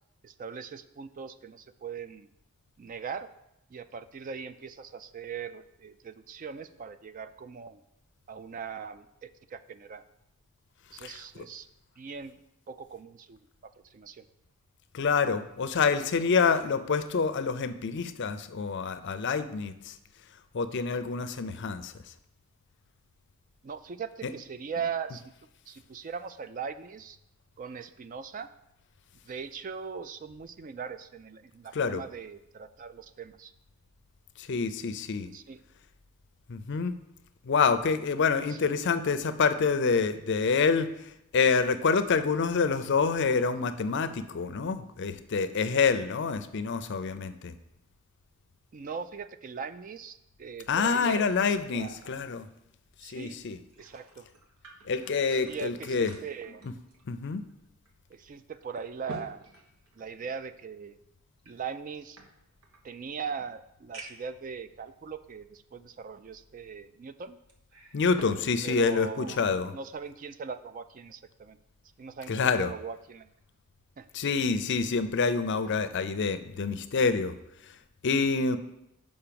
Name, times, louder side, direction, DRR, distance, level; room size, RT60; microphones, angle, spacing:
voice 1, 0.2-2.3 2.8-3.3 3.7-7.8 8.3-10.0 10.9-11.7 12.0-12.4 12.7-14.2 23.6-25.3 25.7-27.2 27.6-28.5 29.3-33.5 35.3-35.6 38.5-38.7 48.7-51.3 51.7-52.1 53.0-53.4 53.8-54.3 55.3-56.7 58.1-59.5 60.0-61.0 61.5-62.2 62.8-67.4 68.6-69.4 69.7-71.6 72.0-73.3 74.0-74.1, right 6 dB, 35° right, 12 dB, 0.3 m, -40 dB
voice 2, 14.9-20.0 20.5-21.9 31.7-32.0 34.4-35.3 36.5-36.9 37.4-47.5 50.7-52.5 53.0-53.6 54.9-56.1 57.1-57.4 67.9-69.7 72.3-72.7 74.1-77.3 77.6-77.8 78.0-78.6, left 5 dB, 50° left, 11 dB, 0.5 m, -27 dB
sound 1, 53.5-57.5 57.9-58.0 58.5-60.5 61.4-62.8 63.4-63.5 63.9-64.4 65.1-65.2 67.5-68.4 68.8-69.6 70.1-70.3, right 2 dB, 90° right, 1.3 m, -49 dB
5.8 x 5.3 x 6.8 m, 0.86 s
head